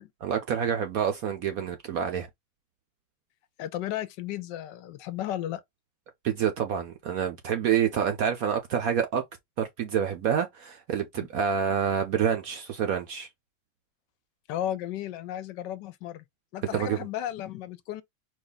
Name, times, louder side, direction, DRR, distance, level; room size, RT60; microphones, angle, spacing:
voice 1, 0.2-2.3 6.2-9.2 9.6-13.3 16.7-17.0, right 8 dB, 65° right, 0.9 m, -27 dB
voice 2, 3.6-5.6 11.2-11.3 14.5-16.2 16.5-18.0, left 12 dB, 75° left, 1.2 m, -34 dB
4.6 x 2.4 x 3.9 m
omnidirectional pair, 2.0 m